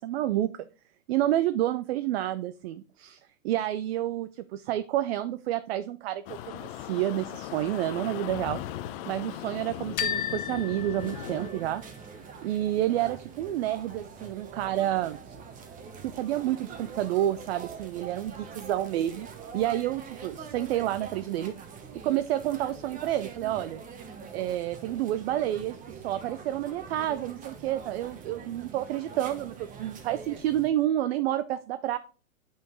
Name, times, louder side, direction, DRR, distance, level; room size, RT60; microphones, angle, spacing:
voice 1, 0.0-0.7 1.1-3.2 3.4-8.6 9.1-11.8 12.4-15.3 16.0-19.3 19.5-21.5 22.0-23.8 24.3-25.8 26.0-32.0, right 13 dB, 50° right, 12 dB, 0.5 m, -29 dB
sound 1, 6.3-11.5, left 12 dB, 40° left, 0.7 m, -38 dB
sound 2, 10.0-11.9, left 10 dB, 80° left, 1.0 m, -34 dB
sound 3, 11.0-30.7, right 6 dB, 20° right, 1.0 m, -44 dB
8.9 x 5.5 x 3.1 m, 0.37 s
hypercardioid pair, 125°, 42 cm